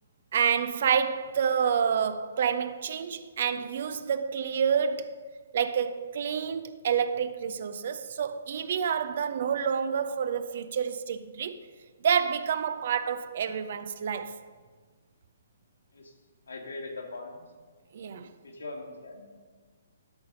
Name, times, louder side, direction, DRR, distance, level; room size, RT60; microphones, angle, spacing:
voice 1, 0.3-5.2 5.5-11.6 12.0-14.4 17.9-18.3, right 7 dB, 50° right, 0.5 m, -28 dB
voice 2, 16.4-17.4 18.4-19.4, left 2 dB, 65° left, 1.8 m, -41 dB
12.5 x 5.5 x 5.1 m
figure-of-eight pair, 125°, 0 cm